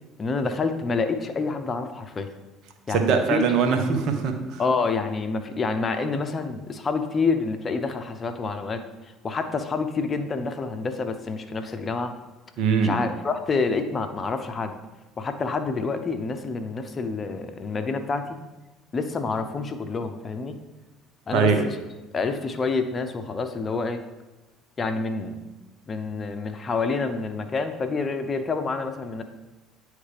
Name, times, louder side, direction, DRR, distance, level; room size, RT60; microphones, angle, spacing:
voice 1, 0.2-2.3 2.9-3.4 4.6-12.1 12.8-14.7 15.2-18.4 18.9-20.6 21.3-21.8 22.1-24.0 24.8-25.4 25.9-29.2, left 4 dB, 35° left, 8 dB, 0.7 m, -28 dB
voice 2, 2.9-4.6 12.6-12.9 21.3-21.6, right 6 dB, 60° right, 6 dB, 0.8 m, -22 dB
9.3 x 3.2 x 3.4 m, 1.1 s
hypercardioid pair, 65°, 0 cm